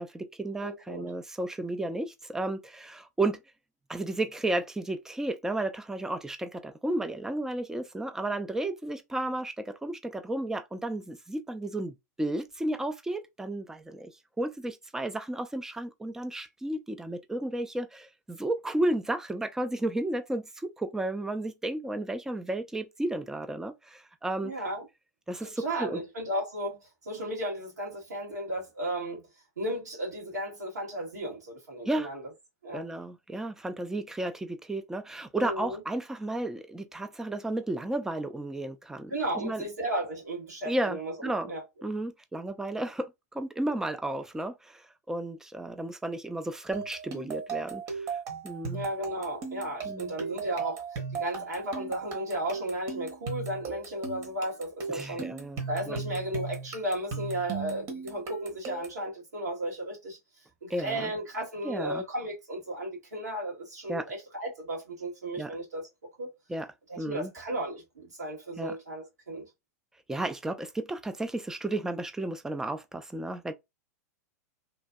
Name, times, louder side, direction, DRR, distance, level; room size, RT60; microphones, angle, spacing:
voice 1, 0.0-3.4 3.9-24.5 25.3-26.0 31.9-32.1 32.7-39.6 40.6-41.5 41.8-48.2 48.4-48.8 49.8-50.1 54.9-56.0 60.7-61.1 61.6-62.0 63.9-64.1 65.4-65.5 66.5-66.7 67.0-67.3 68.6-68.8 70.1-73.5, right 1 dB, 5° right, 0.4 m, -33 dB
voice 2, 0.6-1.1 24.4-24.8 25.4-29.2 29.6-32.2 32.6-32.9 35.3-35.8 39.1-41.6 48.7-55.2 55.7-60.2 60.6-65.9 66.2-66.3 66.9-69.5, right 1 dB, 80° right, 1.6 m, -34 dB
sound 1, 46.7-59.0, right 5 dB, 40° right, 1.0 m, -37 dB
3.1 x 2.5 x 2.2 m
figure-of-eight pair, 95°, 9 cm